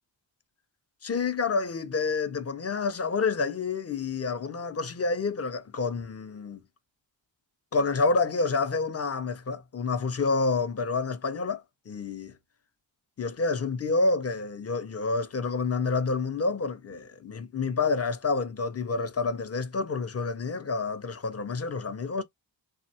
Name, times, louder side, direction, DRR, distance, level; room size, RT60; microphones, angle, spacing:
voice 1, 1.0-6.6 7.7-12.3 13.2-22.2, left 4 dB, 35° left, 0.4 m, -28 dB
3.2 x 2.1 x 2.6 m
wide cardioid pair, 95°, 45 cm